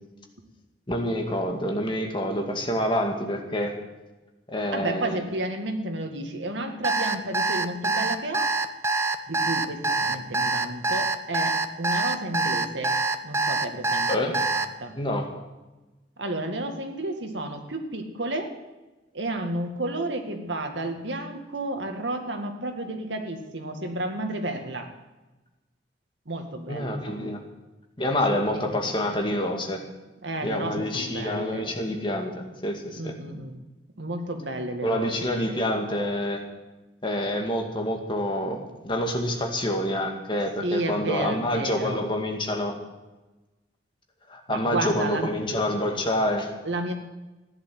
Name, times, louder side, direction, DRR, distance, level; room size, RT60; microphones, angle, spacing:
voice 1, 0.9-3.7 4.5-5.2 14.1-14.4 15.0-15.3 26.7-27.4 28.0-29.8 30.4-33.1 34.8-36.4 37.0-42.8 44.3-46.5, left 1 dB, 30° left, 2 dB, 2.1 m, -27 dB
voice 2, 4.7-8.5 9.3-13.0 13.2-14.9 16.2-18.5 19.1-24.9 26.3-27.3 28.3-28.7 30.2-31.7 33.0-33.6 34.0-35.6 40.6-42.0 44.5-45.3 46.6-46.9, right 1 dB, 85° right, 5 dB, 2.1 m, -32 dB
Alarm, 6.8-14.7, right 3 dB, 15° right, 0.7 m, -25 dB
15.0 x 10.5 x 7.9 m, 1.1 s
head